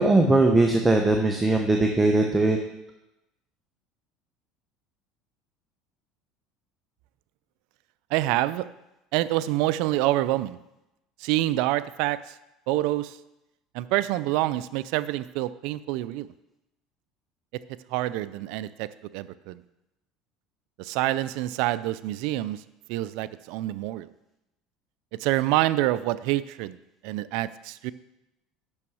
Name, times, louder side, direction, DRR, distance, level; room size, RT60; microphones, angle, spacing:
voice 1, 0.0-2.6, right 2 dB, 15° right, 3 dB, 0.9 m, -20 dB
voice 2, 8.1-8.7 9.1-10.6 11.2-12.2 12.7-13.2 13.7-16.3 17.9-18.9 19.1-19.6 20.8-22.6 22.9-24.1 25.2-26.8 27.0-27.9, right 16 dB, 70° right, 15 dB, 0.4 m, -26 dB
8.7 x 6.2 x 6.2 m, 0.91 s
supercardioid pair, 115°, 0 cm